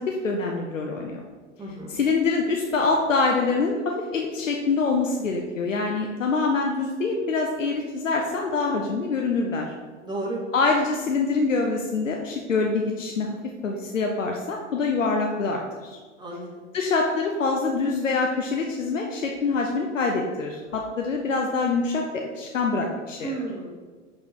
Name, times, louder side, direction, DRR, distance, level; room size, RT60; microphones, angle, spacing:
voice 1, 0.1-1.2 1.9-9.7 10.5-13.3 13.6-16.0 16.7-23.4, left 4 dB, 90° left, 1 dB, 0.8 m, -25 dB
voice 2, 1.6-2.0 10.0-10.4 16.2-16.6 23.2-23.7, right 2 dB, 10° right, -4 dB, 2.2 m, -33 dB
7.4 x 4.0 x 4.8 m, 1.4 s
hypercardioid pair, 90°, 37 cm